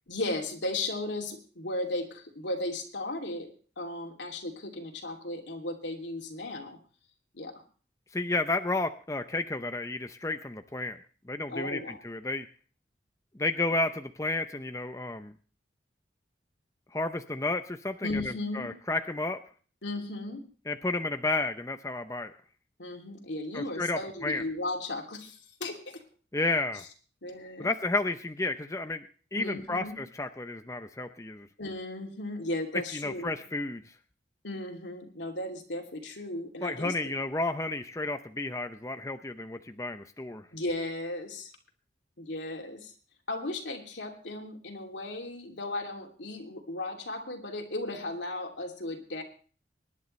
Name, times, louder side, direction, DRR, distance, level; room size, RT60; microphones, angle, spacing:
voice 1, 0.1-3.5 3.8-6.8 7.3-7.6 11.5-12.0 18.0-18.7 19.8-20.4 22.8-26.0 26.7-26.8 27.2-27.7 29.3-30.0 31.6-33.4 34.4-37.1 40.5-41.5 42.2-42.9 43.3-49.2, left 2 dB, 85° left, 2 dB, 2.7 m, -36 dB
voice 2, 8.1-11.0 11.3-12.5 13.3-15.3 16.9-19.4 20.7-22.3 23.5-24.4 26.3-26.8 27.6-29.0 29.3-31.5 32.9-33.8 36.6-40.4, left 2 dB, 15° left, 8 dB, 0.7 m, -32 dB
24.5 x 11.0 x 3.2 m, 0.40 s
head